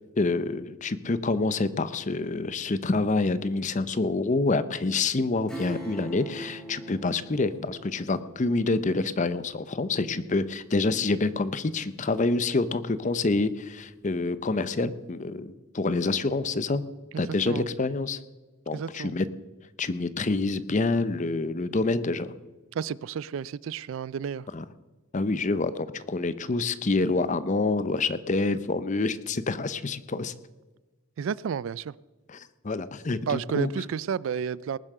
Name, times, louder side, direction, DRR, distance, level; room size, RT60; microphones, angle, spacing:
voice 1, 0.2-16.8 17.2-18.2 18.7-19.3 19.8-22.3 24.5-24.6 25.1-30.3 32.3-33.7, left 3 dB, 35° left, 15 dB, 0.6 m, -27 dB
Acoustic guitar / Strum, 5.5-11.7 12.1-12.2, equal, 5° left, 3.3 m, -43 dB
voice 2, 17.1-17.7 18.7-19.2 22.7-24.5 31.2-32.0 33.3-34.8, right 7 dB, 70° right, 22 dB, 0.3 m, -31 dB
19.5 x 7.3 x 6.7 m, 1.2 s
head